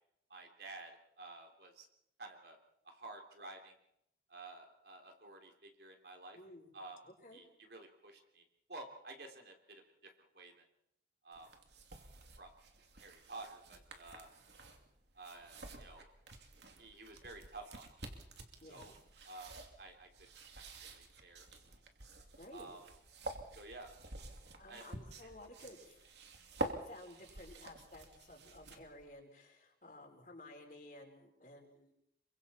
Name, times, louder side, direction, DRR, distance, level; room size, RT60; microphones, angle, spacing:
voice 1, 0.3-0.9 1.2-1.9 2.2-2.6 2.9-3.7 4.3-6.4 6.7-7.0 7.3-9.8 10.2-10.5 11.2-11.5 12.4-12.5 13.0-14.3 15.2-16.1 16.8-17.9 18.6-18.9 19.3-19.5 19.8-20.1 20.6-21.5 22.5-22.8 23.5-24.0 24.7-24.9 25.2-25.3, right 2 dB, 70° right, 3 dB, 3.3 m, -52 dB
voice 2, 6.3-6.7 7.0-7.4 18.6-19.0 22.4-22.8 24.6-26.0 26.7-31.9, left 1 dB, 50° left, 2 dB, 4.5 m, -54 dB
sound 1, 11.3-29.1, right 2 dB, 85° right, 2.8 m, -49 dB
28.0 x 24.0 x 4.4 m, 0.75 s
head